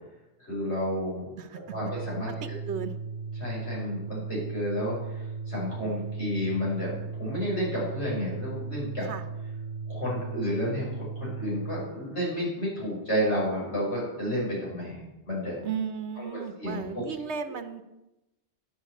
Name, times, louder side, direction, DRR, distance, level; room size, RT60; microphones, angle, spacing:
voice 1, 0.4-1.3 1.7-2.3 3.4-9.1 9.9-15.6 16.2-17.0 17.5-17.6, equal, 85° left, -6 dB, 6.6 m, -31 dB
voice 2, 1.4-1.8 2.3-2.9 9.0-9.2 15.6-17.8, right 7 dB, 80° right, 10 dB, 1.1 m, -35 dB
Organ, 1.6-12.0, right 4 dB, 50° right, 0.4 m, -37 dB
10.5 x 8.0 x 8.3 m, 0.98 s
omnidirectional pair, 1.1 m